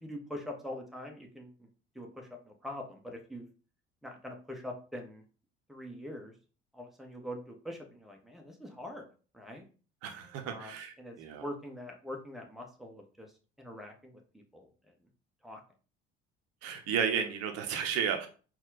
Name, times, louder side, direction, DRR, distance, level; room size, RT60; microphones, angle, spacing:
voice 1, 0.0-1.5 1.9-3.5 4.0-5.2 5.7-6.3 6.7-9.0 9.3-9.7 10.5-11.1 11.4-14.7 15.4-15.6, left 1 dB, ahead, 2 dB, 0.9 m, -43 dB
voice 2, 10.0-11.4 16.6-18.3, right 7 dB, 50° right, 6 dB, 0.8 m, -33 dB
4.2 x 2.4 x 3.9 m, 0.38 s
figure-of-eight pair, 55°, 32 cm